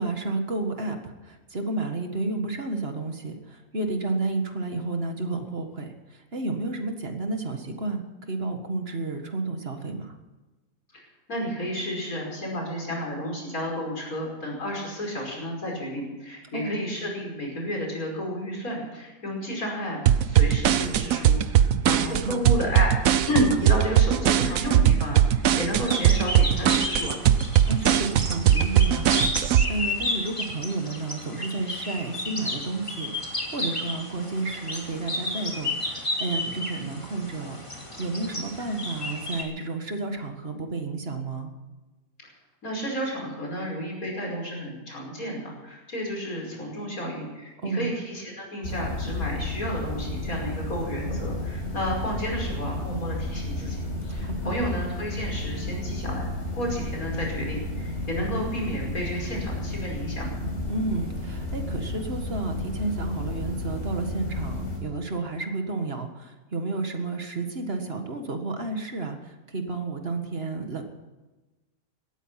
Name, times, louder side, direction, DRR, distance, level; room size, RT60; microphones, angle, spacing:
voice 1, 0.0-10.1 16.5-16.8 22.0-22.4 27.7-33.1 33.5-41.5 47.6-47.9 54.2-54.6 60.7-70.8, right 3 dB, 45° right, 5 dB, 2.0 m, -31 dB
voice 2, 11.3-23.0 23.3-27.2 42.2-42.3 42.6-56.2 56.5-60.3, equal, 75° left, 0 dB, 5.8 m, -31 dB
sound 1, 20.1-29.7, right 10 dB, 70° right, 1.2 m, -20 dB
sound 2, 25.8-39.4, left 1 dB, 20° left, 2.7 m, -32 dB
sound 3, 48.6-64.8, left 1 dB, 50° left, 5.5 m, -32 dB
18.0 x 13.5 x 5.8 m, 1.2 s
omnidirectional pair, 1.5 m